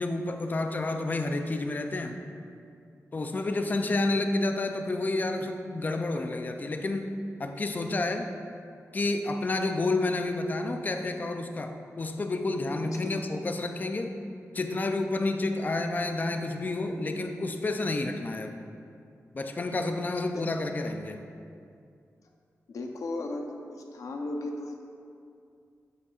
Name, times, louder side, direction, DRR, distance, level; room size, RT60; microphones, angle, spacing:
voice 1, 0.0-2.2 3.1-7.1 7.4-8.3 8.9-14.1 14.5-18.5 19.3-21.2, left 2 dB, 30° left, 5 dB, 0.5 m, -30 dB
voice 2, 12.8-13.3 20.3-20.5 22.7-24.8, left 2 dB, 80° left, 2 dB, 0.7 m, -36 dB
8.0 x 7.9 x 2.5 m, 2.4 s
wide cardioid pair, 130°, 6 cm